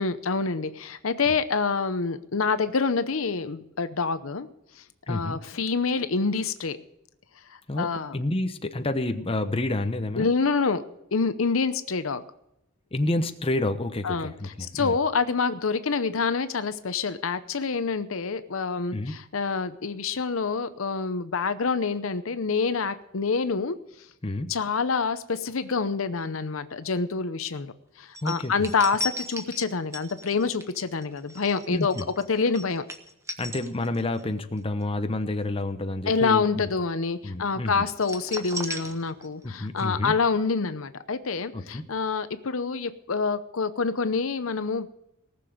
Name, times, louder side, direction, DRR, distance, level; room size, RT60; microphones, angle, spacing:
voice 1, 0.0-4.5 4.8-6.8 7.5-8.2 10.2-10.8 11.1-12.2 14.0-23.8 24.5-27.7 28.0-32.0 32.3-32.8 36.1-44.9, left 4 dB, 75° left, 12 dB, 0.8 m, -27 dB
voice 2, 5.1-5.4 7.7-10.3 12.9-15.0 18.9-19.1 24.2-24.5 28.2-28.5 31.7-32.1 33.4-36.7 37.2-37.8 39.4-40.1 41.5-41.8, left 2 dB, 25° left, 8 dB, 0.9 m, -29 dB
sound 1, 28.1-34.2 34.6-34.8 38.0-39.5 39.8-39.9, equal, 15° right, 1.3 m, -37 dB
19.0 x 6.9 x 7.8 m, 0.84 s
head